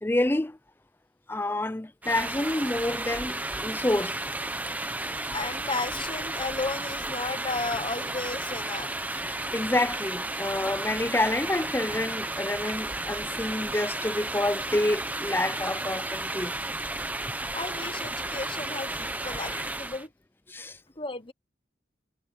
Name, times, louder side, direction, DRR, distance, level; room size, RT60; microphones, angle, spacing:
voice 1, 0.0-0.6 1.3-4.2 9.2-16.5 19.5-19.6 20.5-20.8, left 1 dB, 10° left, 0.5 m, -28 dB
sound 1, 2.0-20.1, right 2 dB, 10° right, 0.9 m, -33 dB
voice 2, 5.3-8.9 17.5-20.1 21.0-21.3, left 3 dB, 25° left, 1.1 m, -34 dB
head